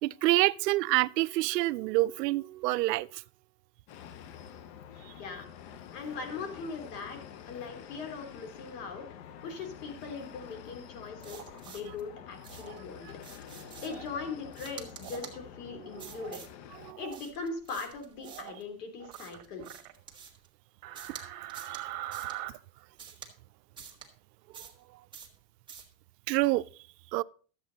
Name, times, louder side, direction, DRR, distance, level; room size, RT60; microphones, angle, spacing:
voice 1, 0.0-3.2 5.0-5.1 13.0-13.1 15.7-16.1 16.8-17.0 21.7-21.8 26.3-26.6 27.1-27.2, right 19 dB, 80° right, 0.6 m, -27 dB
sound 1, 3.9-16.9, left 9 dB, 40° left, 0.7 m, -48 dB
voice 2, 5.9-7.2 7.5-13.1 13.8-16.4 17.0-19.7, left 4 dB, 70° left, 3.3 m, -40 dB
sound 2, 11.2-12.0 12.4-12.8 13.2-14.1 14.5-15.4 16.0-16.5 17.1-18.6 19.1-20.5 20.9-21.2 21.5-21.8 22.1-22.4 23.0-23.3 23.8-24.1 24.5-24.8 25.1-25.4 25.7-25.9, right 7 dB, 10° right, 1.4 m, -48 dB
sound 3, 11.2-11.8 12.5-12.8 13.6-14.1 15.0-15.4 15.8-16.4 16.8-17.2 18.2-18.6 19.0-19.9 20.8-22.5, right 14 dB, 65° right, 1.4 m, -43 dB
12.5 x 8.1 x 4.0 m
supercardioid pair, 150°, 49 cm